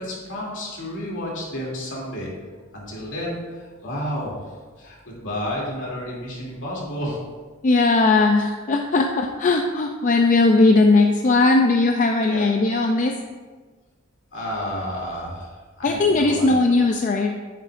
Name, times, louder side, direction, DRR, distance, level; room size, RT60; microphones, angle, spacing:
voice 1, 0.0-2.3 2.7-7.2 12.2-12.4 14.3-16.5, equal, 65° left, -4 dB, 2.8 m, -31 dB
voice 2, 7.6-13.2 15.8-17.3, left 3 dB, 40° left, 3 dB, 0.4 m, -18 dB
10.0 x 9.0 x 2.5 m, 1.4 s
head